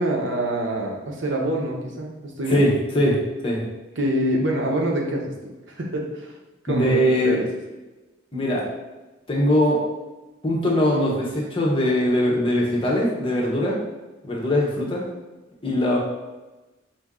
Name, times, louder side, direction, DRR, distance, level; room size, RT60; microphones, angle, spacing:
voice 1, 0.0-2.7 4.0-6.3 6.6-7.5, right 1 dB, 80° right, -1 dB, 0.8 m, -26 dB
voice 2, 2.5-3.6 6.7-7.4 8.3-8.7 9.3-9.8 10.4-13.8 14.2-15.0 15.6-16.0, left 1 dB, 30° left, -3 dB, 0.8 m, -21 dB
4.6 x 2.6 x 3.6 m, 1.1 s
head